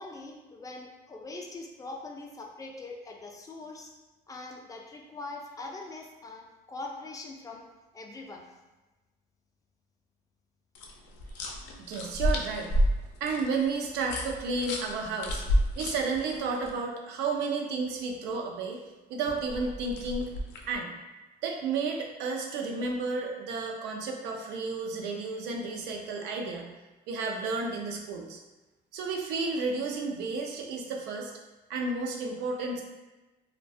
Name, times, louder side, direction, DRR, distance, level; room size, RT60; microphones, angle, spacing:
voice 1, 0.0-3.9 4.3-7.7 7.9-8.5, left 3 dB, 20° left, 1 dB, 0.3 m, -42 dB
sound 1, 10.7-16.7 19.3-20.7, equal, 85° left, 0.4 m, -31 dB
voice 2, 11.8-12.7 13.2-15.4 15.8-18.8 19.1-20.3 20.7-20.9 21.4-26.7 27.1-28.4 28.9-31.3 31.7-32.8, right 4 dB, 85° right, 1 dB, 0.4 m, -32 dB
2.3 x 2.1 x 2.6 m, 1.1 s
cardioid pair, 110°, 17 cm